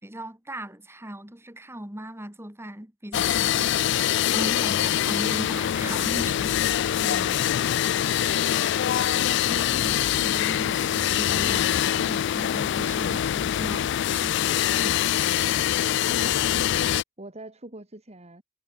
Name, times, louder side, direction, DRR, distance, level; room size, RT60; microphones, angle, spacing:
voice 1, 0.0-3.7 4.3-6.6 9.5-15.3, right 1 dB, 15° right, 4.7 m, -38 dB
sound 1, 3.1-17.0, left 11 dB, 65° left, 0.3 m, -24 dB
voice 2, 4.3-4.7 7.0-7.5 16.1-16.7 17.2-18.4, right 1 dB, 35° right, 2.7 m, -41 dB
head